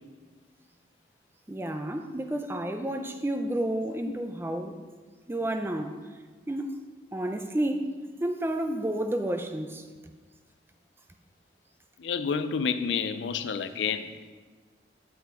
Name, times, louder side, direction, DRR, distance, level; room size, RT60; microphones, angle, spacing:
voice 1, 1.5-4.8 5.3-6.0 6.5-6.8 7.1-7.9 8.2-9.9, right 1 dB, 10° right, 6 dB, 0.4 m, -30 dB
voice 2, 12.0-14.2, left 6 dB, 80° left, 11 dB, 0.4 m, -29 dB
8.4 x 5.8 x 3.7 m, 1.4 s
head